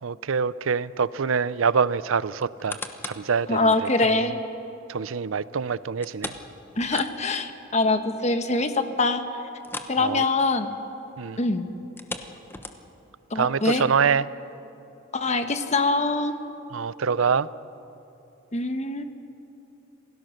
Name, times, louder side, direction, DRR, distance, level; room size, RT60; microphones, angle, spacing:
voice 1, 0.0-4.2 4.9-6.3 6.9-7.0 10.0-10.2 11.2-11.4 13.3-14.3 16.7-17.5, right 6 dB, 85° right, 18 dB, 0.5 m, -25 dB
sound 1, 2.4-3.3 3.8-3.9 6.0-7.5 7.8-7.9 8.4-8.5 9.6-10.0 10.3-10.5 11.8-13.1 13.7-13.8, left 2 dB, 10° left, 1.0 m, -38 dB
voice 2, 3.5-4.4 6.8-9.2 9.9-10.7 11.4-11.7 13.3-13.8 15.1-16.4 18.5-19.0, left 3 dB, 35° left, 8 dB, 1.2 m, -24 dB
27.0 x 17.5 x 6.6 m, 2.9 s
head